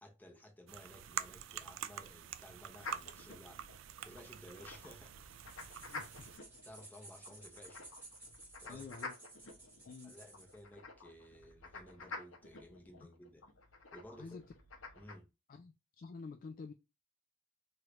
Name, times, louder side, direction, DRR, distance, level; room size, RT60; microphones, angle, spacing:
voice 1, 0.0-3.6 4.0-5.5 6.6-7.9 8.6-8.9 10.0-13.4 13.9-14.4 15.0-15.3, equal, 10° left, 0.7 m, -56 dB
sound 1, 0.7-6.4, right 9 dB, 75° right, 0.3 m, -46 dB
sound 2, 2.8-15.1, left 3 dB, 85° left, 0.8 m, -51 dB
sound 3, 5.4-10.6, right 2 dB, 10° right, 1.2 m, -56 dB
voice 2, 5.9-6.3 8.7-9.1 9.9-10.1 14.2-14.4 15.5-16.7, left 4 dB, 45° left, 0.3 m, -49 dB
3.1 x 3.1 x 2.4 m
head